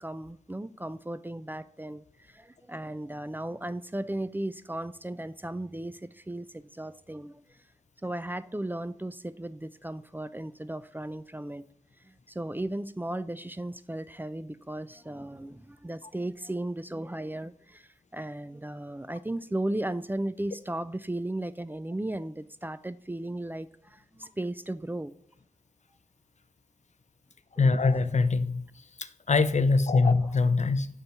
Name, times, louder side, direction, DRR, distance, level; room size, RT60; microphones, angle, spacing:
voice 1, 0.0-7.4 8.0-11.6 12.1-17.9 18.1-25.1 27.6-27.7 30.0-30.1, right 1 dB, 15° right, 0.3 m, -36 dB
voice 2, 27.6-28.7 29.0-30.9, left 4 dB, 65° left, 0.4 m, -23 dB
5.3 x 4.2 x 4.6 m
wide cardioid pair, 45°, 13 cm